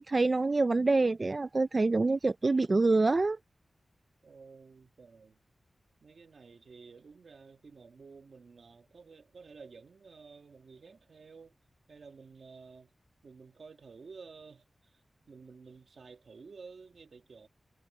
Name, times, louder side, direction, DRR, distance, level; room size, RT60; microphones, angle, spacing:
voice 1, 0.0-3.4, right 3 dB, 40° right, 0.5 m, -26 dB
voice 2, 4.2-5.4 6.0-11.5 11.9-12.9 13.2-14.6 15.3-17.5, right 4 dB, 75° right, 2.2 m, -52 dB
wide cardioid pair, 85°, 0 cm